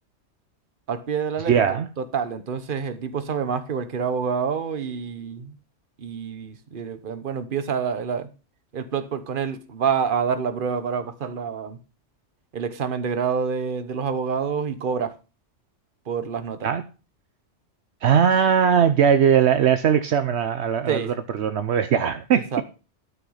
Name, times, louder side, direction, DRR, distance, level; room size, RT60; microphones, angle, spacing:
voice 1, 0.9-5.5 6.0-8.3 8.7-11.8 12.5-15.2 16.1-16.7 20.9-21.1 22.5-22.6, right 6 dB, 50° right, 1.1 m, -27 dB
voice 2, 1.5-1.9 16.6-16.8 18.0-22.4, right 8 dB, 70° right, 1.0 m, -20 dB
12.5 x 6.0 x 5.6 m
omnidirectional pair, 1.2 m